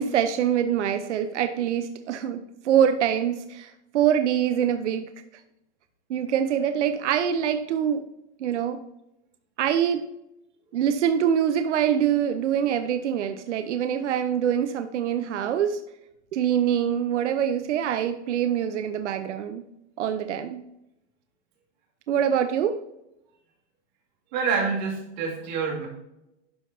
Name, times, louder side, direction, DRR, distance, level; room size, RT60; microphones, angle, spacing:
voice 1, 0.0-5.1 6.1-8.0 8.4-8.8 9.6-10.1 10.7-15.8 16.3-19.6 20.0-20.6 22.1-22.8, right 9 dB, 90° right, 9 dB, 0.8 m, -24 dB
voice 2, 24.3-25.9, right 5 dB, 40° right, -1 dB, 2.4 m, -27 dB
11.5 x 5.5 x 2.7 m, 0.86 s
supercardioid pair, 180°, 34 cm